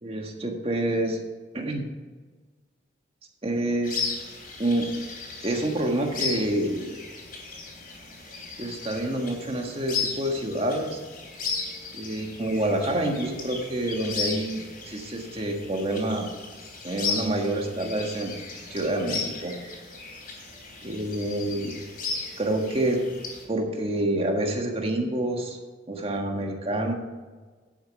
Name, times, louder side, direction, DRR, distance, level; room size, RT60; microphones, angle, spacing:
voice 1, 0.0-1.2 1.5-1.9 3.4-4.0 4.6-4.9 5.4-7.0 8.6-11.0 11.9-16.3 16.8-18.3 18.7-19.5 20.8-21.7 22.4-23.0 23.5-25.6 25.9-26.9, right 1 dB, 30° right, 2 dB, 1.6 m, -27 dB
sound 1, 3.8-23.4, left 4 dB, 50° left, 3.5 m, -36 dB
11.0 x 8.2 x 4.8 m, 1.4 s
head